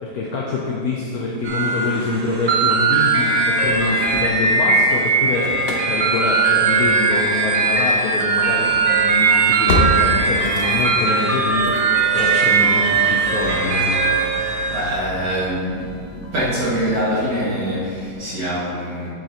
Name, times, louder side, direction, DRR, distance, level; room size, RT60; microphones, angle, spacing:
voice 1, 0.0-5.5 5.9-13.9, left 3 dB, 70° left, -3 dB, 1.1 m, -25 dB
sound 1, 1.4-14.9, right 4 dB, 55° right, 1.5 m, -19 dB
Engine starting / Slam, 3.4-4.8 5.1-18.1, left 2 dB, 50° left, 0.8 m, -31 dB
voice 2, 14.7-15.9 16.3-19.1, equal, 85° right, -9 dB, 2.8 m, -24 dB
8.6 x 7.6 x 2.9 m, 2.4 s
omnidirectional pair, 1.8 m